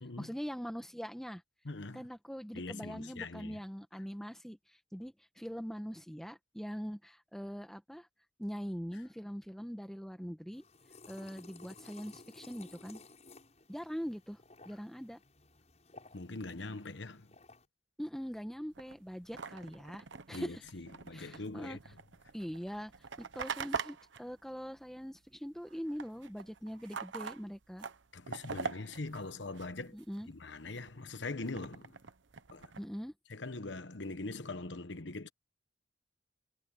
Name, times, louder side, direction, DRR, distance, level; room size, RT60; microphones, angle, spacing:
voice 1, 0.2-1.4 1.9-8.1 8.4-10.6 11.1-13.0 13.7-14.4 14.6-15.2 18.0-20.6 21.1-21.8 22.3-22.9 23.2-27.9 29.9-30.3 32.8-33.1, equal, ahead, 1.7 m, -42 dB
voice 2, 1.6-2.0 2.5-3.6 16.1-17.3 20.3-21.8 28.1-30.0 30.3-31.9 32.5-32.7 33.3-35.3, left 3 dB, 70° left, 1.2 m, -42 dB
sound 1, 10.5-17.7, left 3 dB, 35° left, 7.5 m, -56 dB
sound 2, 18.7-25.3 25.6-30.2 30.6-32.8, right 5 dB, 80° right, 1.0 m, -44 dB
head